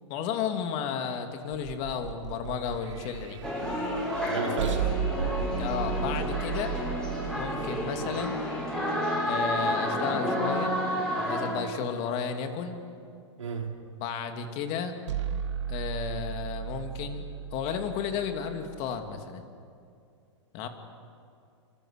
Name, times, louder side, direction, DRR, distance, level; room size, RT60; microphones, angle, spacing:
voice 1, 0.1-3.4 5.6-6.7 7.3-8.4 9.3-10.8 11.1-12.8 14.0-15.0 15.7-17.2 17.5-19.4 20.5-20.7, left 7 dB, 40° left, 6 dB, 2.8 m, -33 dB
sound 1, 1.5-8.8 15.1-19.2, right 8 dB, 70° right, 1.9 m, -35 dB
sound 2, 3.4-11.5, equal, 5° left, 7.3 m, -30 dB
voice 2, 4.2-5.0 11.7-11.8 13.4-13.8, right 4 dB, 90° right, 2 dB, 3.6 m, -33 dB
27.5 x 25.0 x 6.7 m, 2.4 s
hypercardioid pair, 130°, 16 cm